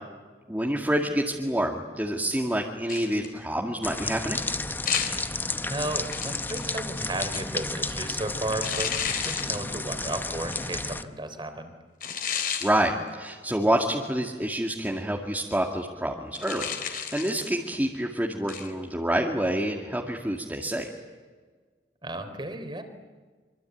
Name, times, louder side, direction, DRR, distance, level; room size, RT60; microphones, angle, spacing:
voice 1, 0.5-4.4 12.6-20.9, right 1 dB, 10° right, -1 dB, 2.1 m, -27 dB
sound 1, 2.9-3.4 4.9-5.3 6.1-7.7 8.6-9.6 10.5-10.8 12.0-12.7 16.3-17.6 18.5-18.7, left 7 dB, 55° left, 3.9 m, -32 dB
Medium Light Rain, 3.8-11.0, left 2 dB, 10° left, 0.9 m, -32 dB
voice 2, 5.6-11.7 22.0-22.8, right 1 dB, 30° right, 8 dB, 3.4 m, -34 dB
25.5 x 25.0 x 9.3 m, 1.4 s
head